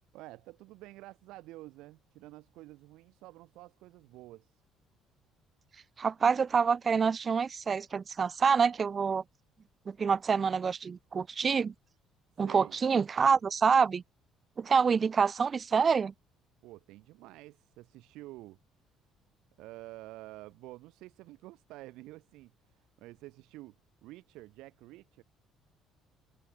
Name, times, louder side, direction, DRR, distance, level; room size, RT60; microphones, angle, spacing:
voice 1, 0.1-4.5 12.4-12.8 16.6-18.6 19.6-23.7 24.0-25.2, right 18 dB, 85° right, 1.6 m, -49 dB
voice 2, 6.0-9.2 9.9-11.7 12.4-14.0 14.6-16.1, right 6 dB, 25° right, 0.8 m, -27 dB
cardioid pair, 155°, 0 cm